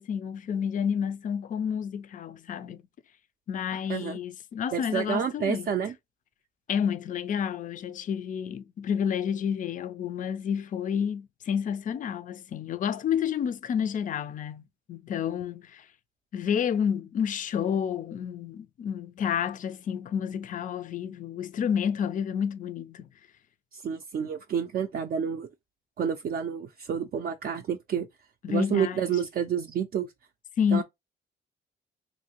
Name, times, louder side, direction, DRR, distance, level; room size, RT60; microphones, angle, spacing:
voice 1, 0.0-2.8 3.5-5.7 6.7-15.9 16.3-23.1 28.4-29.1 30.6-30.8, left 8 dB, 40° left, 0.4 m, -30 dB
voice 2, 4.7-5.9 23.7-25.5 26.0-28.1 28.5-30.1 30.7-30.8, right 7 dB, 50° right, 0.4 m, -29 dB
2.8 x 2.6 x 2.8 m
cardioid pair, 90°, 20 cm